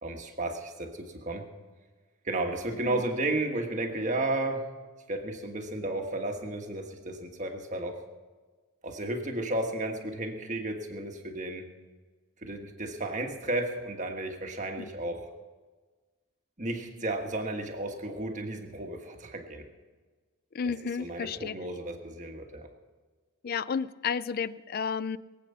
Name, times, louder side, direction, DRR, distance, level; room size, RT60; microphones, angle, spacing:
voice 1, 0.0-1.5 2.2-4.7 5.1-8.0 8.8-11.7 12.4-15.3 16.6-19.7 21.0-22.7, right 2 dB, 35° right, 4 dB, 1.5 m, -33 dB
voice 2, 20.5-21.5 23.4-25.2, left 6 dB, 40° left, 17 dB, 0.4 m, -32 dB
22.0 x 8.5 x 5.6 m, 1.4 s
head